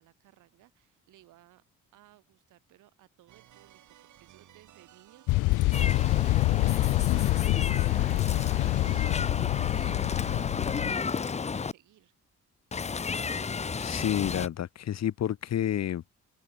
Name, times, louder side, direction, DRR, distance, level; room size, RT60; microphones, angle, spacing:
voice 1, 0.0-1.6 1.9-10.6 10.8-12.1, right 16 dB, 90° right, 4.7 m, -60 dB
sound 1, 3.3-10.3, right 12 dB, 75° right, 4.1 m, -57 dB
sound 2, 5.3-10.9, left 20 dB, 85° left, 0.5 m, -26 dB
Meow, 5.7-11.7 12.7-14.5, left 5 dB, 20° left, 0.7 m, -33 dB
voice 2, 13.7-16.1, left 11 dB, 60° left, 1.5 m, -30 dB
cardioid pair, 90°, 30 cm